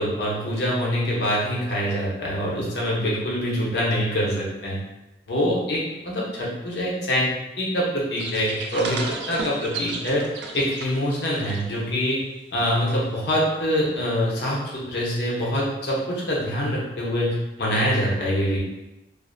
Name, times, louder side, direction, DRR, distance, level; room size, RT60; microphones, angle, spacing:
voice 1, 0.0-4.8 5.3-7.3 7.6-9.0 9.3-10.2 10.5-12.2 12.5-18.6, equal, 65° left, -5 dB, 0.7 m, -24 dB
sound 1, 8.2-11.8 12.1-12.4 14.7-14.8, right 3 dB, 70° right, 0.3 m, -34 dB
2.4 x 2.1 x 2.5 m, 0.98 s
head